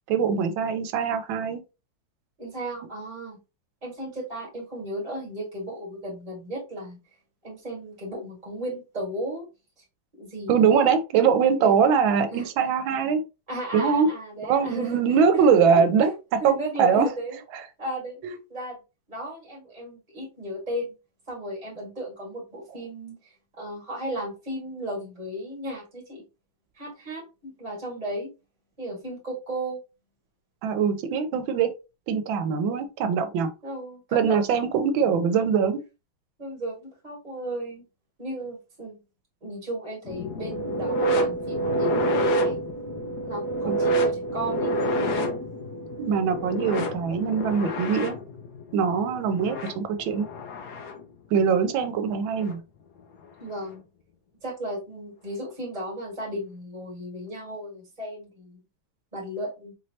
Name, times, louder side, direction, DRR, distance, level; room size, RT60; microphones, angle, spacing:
voice 1, 0.1-1.6 10.5-13.2 13.7-14.1 14.4-17.1 18.2-18.4 30.6-31.7 32.1-33.5 34.1-35.8 43.7-43.8 46.0-48.2 48.7-50.3 51.3-52.6, right 6 dB, 80° right, 1.4 m, -22 dB
voice 2, 2.4-3.4 3.8-7.0 7.4-9.5 9.8-9.9 10.1-10.9 11.6-11.9 12.3-12.4 13.5-15.2 15.8-15.9 16.4-17.4 17.8-18.2 18.5-18.8 19.1-20.9 21.3-26.2 26.8-28.3 28.8-29.8 33.6-34.5 34.9-35.4 36.4-37.8 38.2-39.0 39.4-42.6 43.2-44.7 52.0-52.1 53.4-53.8 54.4-58.6 59.1-59.7, right 1 dB, 25° right, 1.8 m, -35 dB
sound 1, 40.0-51.0 52.3-52.5 53.5-53.6, right 1 dB, 60° left, 1.2 m, -28 dB
4.6 x 3.1 x 2.7 m
omnidirectional pair, 2.1 m